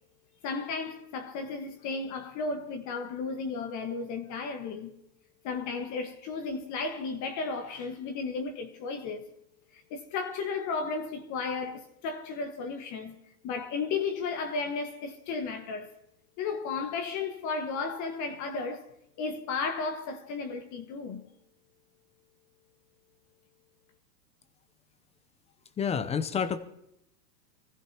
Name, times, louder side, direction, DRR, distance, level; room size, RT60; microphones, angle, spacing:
voice 1, 0.4-4.9 5.4-9.3 9.7-13.2 13.4-15.9 16.4-18.9 19.2-21.2, left 4 dB, 35° left, 1.5 m, -34 dB
voice 2, 25.8-26.6, left 7 dB, 15° left, 0.6 m, -29 dB
24.0 x 15.0 x 2.9 m
hypercardioid pair, 120°, 49 cm